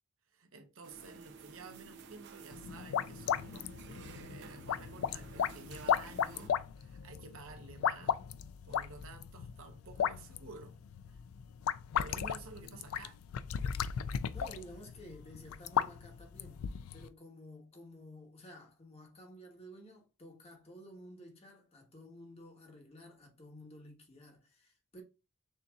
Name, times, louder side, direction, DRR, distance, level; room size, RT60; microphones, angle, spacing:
voice 1, 0.3-8.2 8.6-10.8 12.0-13.2, right 3 dB, 75° right, 0.9 m, -52 dB
sound 1, 0.8-6.5, right 5 dB, 55° right, 0.5 m, -53 dB
sound 2, 2.5-17.1, left 8 dB, 85° left, 0.3 m, -36 dB
voice 2, 14.3-25.0, equal, 30° left, 1.2 m, -53 dB
6.4 x 2.8 x 2.3 m
head